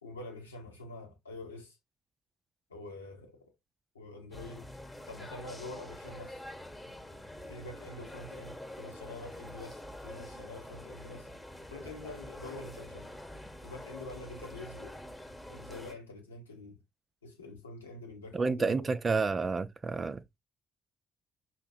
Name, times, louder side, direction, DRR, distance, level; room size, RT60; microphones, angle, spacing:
voice 1, 0.0-1.8 2.7-3.5 3.9-4.7 5.1-6.4 7.5-11.3 11.7-13.1 13.6-15.0 15.5-16.8 17.2-18.9, left 2 dB, 80° left, 1.0 m, -46 dB
sound 1, 4.3-15.9, left 1 dB, 10° left, 1.1 m, -46 dB
voice 2, 18.3-20.4, right 4 dB, 35° right, 0.5 m, -30 dB
5.9 x 2.8 x 2.6 m
figure-of-eight pair, 40°, 0 cm